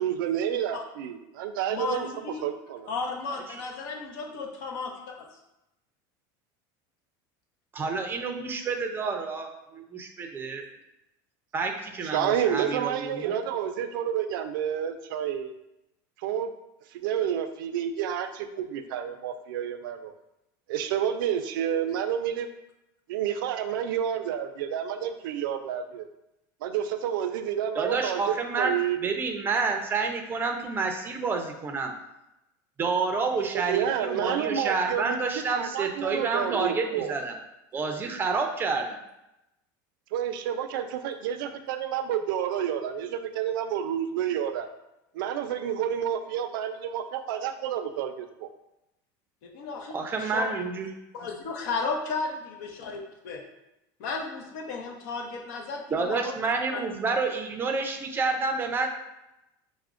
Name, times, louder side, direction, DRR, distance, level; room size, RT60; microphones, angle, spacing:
voice 1, 0.0-2.9 12.0-15.5 16.2-16.5 16.9-20.1 20.7-22.5 23.1-26.1 26.6-28.2 28.6-29.0 33.5-37.1 40.1-44.7 45.1-48.5, right 9 dB, 90° right, 8 dB, 0.4 m, -29 dB
voice 2, 1.7-2.4 2.9-5.2 49.4-50.5 51.1-53.4 54.0-56.3 56.7-56.8, left 4 dB, 70° left, 2 dB, 0.7 m, -34 dB
voice 3, 3.3-3.6 7.7-10.7 11.5-13.4 27.7-31.9 32.8-37.3 37.7-39.0 49.9-50.9 55.9-58.9, right 4 dB, 20° right, 4 dB, 0.4 m, -29 dB
5.7 x 2.1 x 2.4 m, 0.90 s
supercardioid pair, 135°, 11 cm